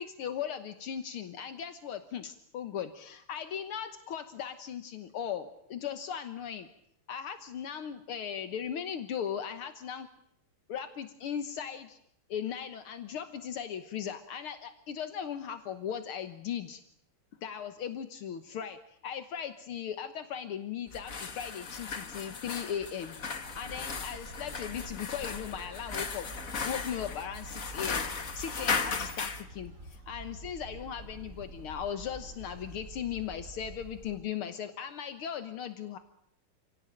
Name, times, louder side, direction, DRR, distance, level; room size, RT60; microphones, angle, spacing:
voice 1, 0.0-6.7 7.1-10.1 10.7-12.0 12.3-16.8 17.4-23.2 23.6-26.3 26.7-36.0, left 8 dB, 75° left, 9 dB, 2.1 m, -38 dB
sound 1, 20.9-29.4, left 5 dB, 40° left, 1.9 m, -36 dB
sound 2, 23.4-34.2, right 2 dB, 35° right, 3.7 m, -47 dB
29.0 x 17.0 x 9.0 m, 0.72 s
omnidirectional pair, 2.4 m